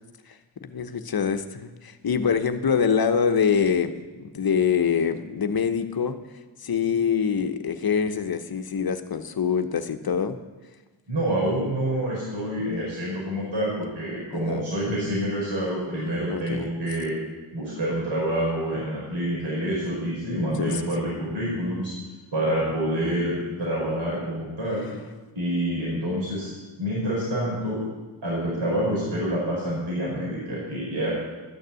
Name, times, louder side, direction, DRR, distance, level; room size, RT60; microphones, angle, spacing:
voice 1, 0.6-6.1 6.6-10.4 14.3-14.6 16.3-16.7 20.6-20.8, left 6 dB, 50° left, 9 dB, 1.0 m, -25 dB
voice 2, 11.1-17.1 17.5-21.9 22.3-24.9 25.3-26.5 26.8-27.8 28.2-31.1, right 1 dB, 75° right, -6 dB, 4.9 m, -27 dB
12.5 x 6.6 x 8.2 m, 1.2 s
cardioid pair, 55°, 46 cm